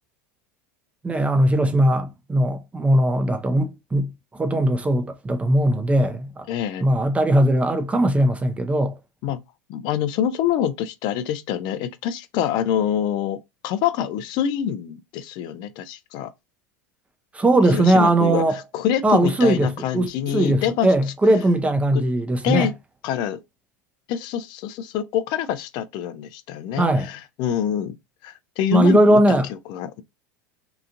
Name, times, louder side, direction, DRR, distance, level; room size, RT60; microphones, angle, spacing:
voice 1, 1.0-6.5 6.8-9.0 17.3-18.6 19.0-22.7 26.8-27.1 28.7-29.5, right 1 dB, 15° right, 0.5 m, -19 dB
voice 2, 6.5-6.8 9.2-9.4 9.7-16.3 17.7-20.9 21.9-22.0 22.4-22.7 23.0-23.4 24.1-27.9 28.2-29.2 29.5-30.0, left 9 dB, 50° left, 0.4 m, -26 dB
2.8 x 2.4 x 2.4 m
hypercardioid pair, 90°, 10 cm